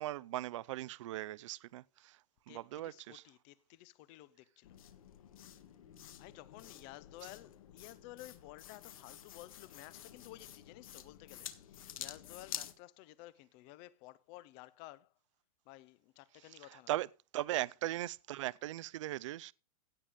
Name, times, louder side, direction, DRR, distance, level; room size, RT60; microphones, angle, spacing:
voice 1, 0.0-2.2 2.5-3.2 16.9-17.1 17.3-19.5, right 15 dB, 50° right, 0.5 m, -38 dB
voice 2, 2.5-4.8 6.2-15.2 15.7-16.9, left 17 dB, 25° left, 0.5 m, -54 dB
sound 1, 4.6-12.7, left 11 dB, 65° left, 1.7 m, -50 dB
16.5 x 7.0 x 5.0 m
supercardioid pair, 175°, 19 cm